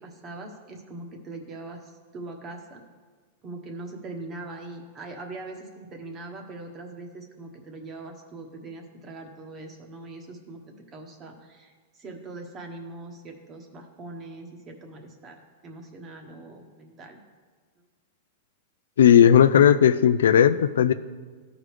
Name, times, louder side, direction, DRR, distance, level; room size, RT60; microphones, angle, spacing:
voice 1, 0.0-2.8 3.4-17.2, right 2 dB, 30° right, 4 dB, 1.2 m, -41 dB
voice 2, 19.0-20.9, left 9 dB, 85° left, 12 dB, 0.3 m, -16 dB
13.5 x 5.0 x 3.3 m, 1.4 s
hypercardioid pair, 125°, 0 cm